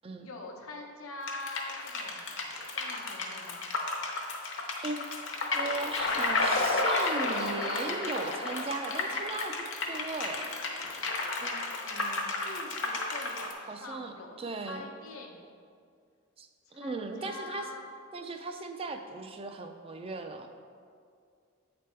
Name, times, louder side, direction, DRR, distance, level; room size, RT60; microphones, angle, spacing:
voice 1, 0.2-3.7 11.9-14.4 14.7-15.4 16.7-17.9, left 2 dB, 90° left, 1 dB, 0.8 m, -44 dB
sound 1, 1.3-13.5, left 3 dB, 60° left, 0.8 m, -32 dB
voice 2, 4.8-10.5 11.4-12.4 13.7-14.1 14.4-14.9 16.4-17.7 18.1-20.5, right 3 dB, 25° right, 6 dB, 0.3 m, -38 dB
8.3 x 3.4 x 4.3 m, 2.3 s
head